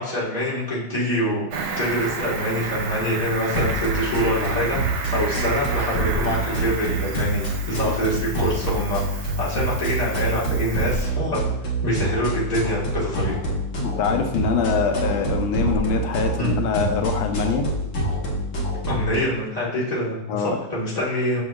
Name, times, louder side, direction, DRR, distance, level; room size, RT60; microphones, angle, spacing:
voice 1, 0.0-1.4 1.8-11.4 11.8-13.3 16.4-16.5 18.9-21.4, equal, 20° left, -7 dB, 1.7 m, -25 dB
Cricket, 1.5-11.0, right 4 dB, 90° right, 1.7 m, -32 dB
sound 1, 3.5-19.2, right 2 dB, 60° left, 1.8 m, -26 dB
voice 2, 13.8-17.7 20.3-20.6 21.0-21.1, left 6 dB, 90° left, 5 dB, 1.4 m, -24 dB
6.8 x 6.3 x 2.4 m, 0.88 s
omnidirectional pair, 2.2 m